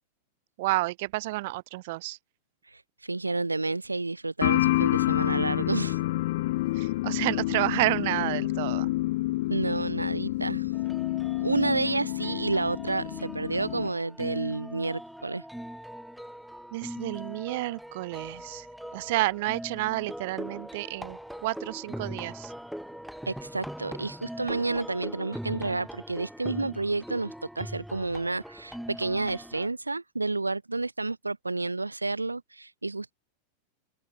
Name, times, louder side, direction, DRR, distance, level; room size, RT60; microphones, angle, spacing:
voice 1, 0.6-2.2 6.7-8.9 16.7-18.7 18.9-22.5, right 20 dB, 50° right, 1.7 m, -30 dB
voice 2, 2.7-6.0 9.5-10.7 11.4-15.4 23.3-33.1, right 3 dB, 80° right, 1.0 m, -30 dB
sound 1, 4.4-13.9, left 18 dB, 50° left, 4.7 m, -28 dB
sound 2, 10.7-29.7, equal, ahead, 3.8 m, -41 dB
open air
figure-of-eight pair, 90°, 0 cm